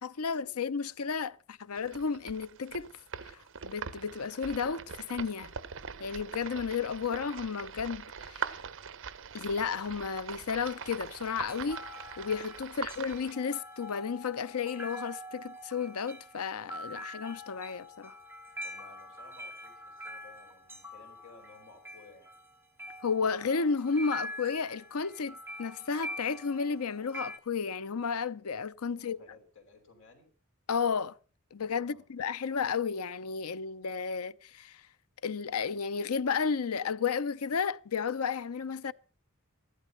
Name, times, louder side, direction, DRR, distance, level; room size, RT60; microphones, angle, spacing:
voice 1, 0.0-2.9 3.2-5.5 6.0-8.6 9.3-11.8 12.2-18.1 23.0-29.2 30.7-31.2 31.5-34.8 35.2-38.9, left 5 dB, 80° left, 0.7 m, -33 dB
sound 1, 1.7-13.3, right 6 dB, 60° right, 0.9 m, -42 dB
sound 2, 10.6-27.4, equal, 10° right, 2.4 m, -45 dB
voice 2, 18.6-22.4 28.9-30.3 31.8-32.0, left 3 dB, 60° left, 6.1 m, -56 dB
14.5 x 12.5 x 5.8 m
head